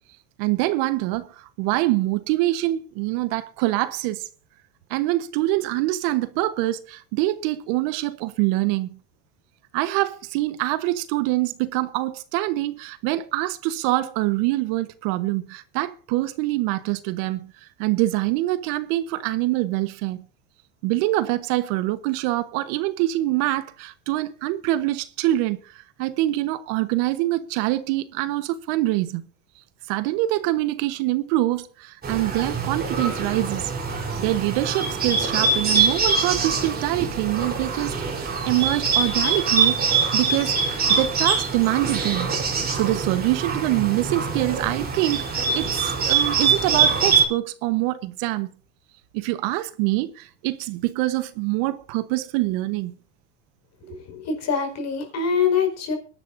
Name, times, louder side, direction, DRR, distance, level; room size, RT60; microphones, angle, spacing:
voice 1, 0.4-4.3 4.9-9.0 9.7-20.2 20.8-29.3 29.9-33.7 34.2-38.0 38.4-42.3 42.7-48.5 49.1-52.9 53.8-54.0, right 17 dB, 60° right, 1.3 m, -25 dB
Bird, 32.0-47.2, right 5 dB, 25° right, 4.0 m, -24 dB
voice 2, 53.9-56.0, left 6 dB, 45° left, 5.0 m, -24 dB
23.5 x 11.5 x 2.7 m
supercardioid pair, 120°, 37 cm